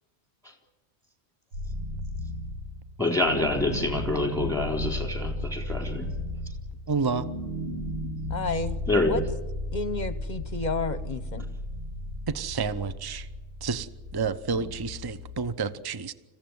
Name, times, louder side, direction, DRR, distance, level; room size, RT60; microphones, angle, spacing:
sound 1, 1.5-15.5, left 1 dB, 85° right, 2.8 m, -35 dB
voice 1, 3.0-6.1 8.9-9.2 14.5-14.6, left 2 dB, 5° left, 2 dB, 4.0 m, -26 dB
voice 2, 6.9-7.3 12.3-13.3 13.6-16.1, right 5 dB, 25° right, 13 dB, 0.6 m, -30 dB
voice 3, 8.3-8.8 9.1-9.2 9.7-11.4, left 3 dB, 45° left, 12 dB, 1.0 m, -31 dB
26.5 x 15.5 x 9.4 m, 1.2 s
omnidirectional pair, 1.2 m